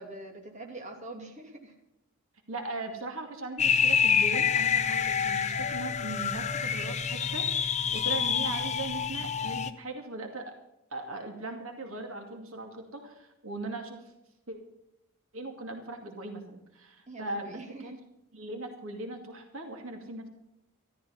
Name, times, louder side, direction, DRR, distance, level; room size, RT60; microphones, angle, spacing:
voice 1, 0.0-1.7 7.9-8.1 17.1-17.9, right 2 dB, 30° right, 2 dB, 2.7 m, -44 dB
voice 2, 2.5-10.5 10.9-14.0 14.5-14.6 15.3-18.0 18.3-20.3, right 2 dB, 65° right, 3 dB, 2.4 m, -39 dB
sound 1, 3.6-9.7, left 7 dB, 30° left, 0.7 m, -27 dB
14.0 x 12.5 x 5.7 m, 0.87 s
head